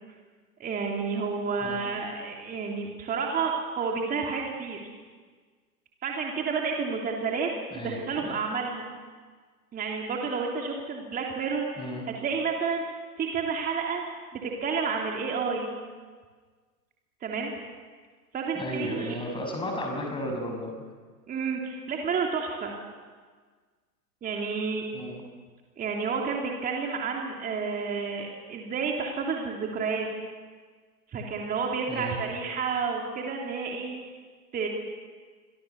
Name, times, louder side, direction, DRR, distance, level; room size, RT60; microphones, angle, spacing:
voice 1, 0.6-4.8 6.0-7.5 7.7-8.9 9.7-11.9 12.2-12.8 13.2-14.0 14.3-15.7 17.2-17.5 18.3-19.1 21.3-22.7 24.2-24.8 25.8-30.1 31.1-33.9 34.5-34.7, right 5 dB, 15° right, 0 dB, 3.2 m, -30 dB
voice 2, 7.7-8.3 11.8-12.0 18.5-20.7 24.9-25.2 31.9-32.2, left 1 dB, 10° left, 2 dB, 6.3 m, -34 dB
27.5 x 24.5 x 7.1 m, 1.5 s
figure-of-eight pair, 120°, 49 cm